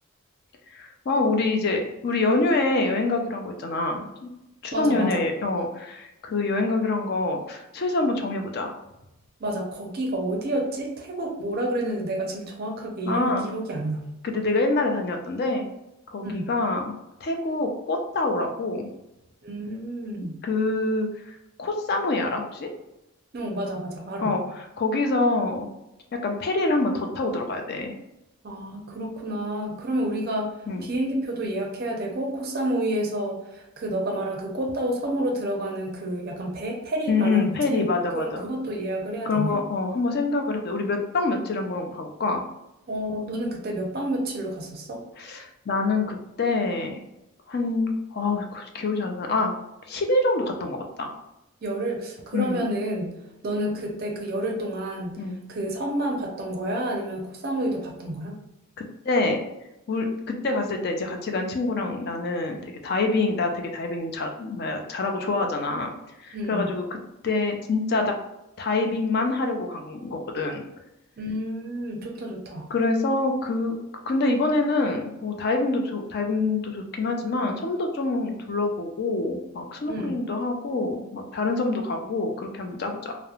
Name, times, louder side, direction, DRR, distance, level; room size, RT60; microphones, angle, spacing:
voice 1, 0.7-4.3 4.6-8.7 13.1-13.4 14.2-15.6 16.1-17.0 17.2-18.9 20.4-22.7 24.2-24.4 24.8-25.7 26.2-27.9 30.7-30.9 37.1-38.4 39.2-42.4 45.2-47.0 47.5-49.5 49.9-51.1 52.3-52.6 55.2-55.4 59.0-59.4 59.9-65.9 66.2-66.8 67.2-68.1 68.6-70.6 72.7-73.7 74.1-83.2, left 3 dB, 45° left, 4 dB, 0.4 m, -26 dB
voice 2, 4.7-5.3 9.4-14.1 16.2-16.5 19.4-20.4 23.3-24.4 28.4-37.9 38.1-39.6 42.9-45.0 51.6-53.1 53.4-55.2 55.5-58.4 66.3-66.7 71.2-72.7 79.9-80.2, right 1 dB, 45° right, 1 dB, 0.5 m, -29 dB
3.0 x 2.0 x 2.3 m, 0.90 s
head